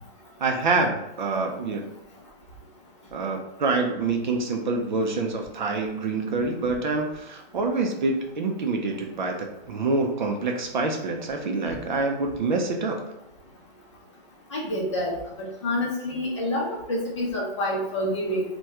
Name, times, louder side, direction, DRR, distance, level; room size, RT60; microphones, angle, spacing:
voice 1, 0.4-1.9 3.1-13.0, right 3 dB, 50° right, 3 dB, 0.5 m, -26 dB
voice 2, 14.5-15.1 15.4-18.4, left 1 dB, 30° left, -3 dB, 0.6 m, -27 dB
2.9 x 2.2 x 3.4 m, 0.88 s
hypercardioid pair, 175°, 30 cm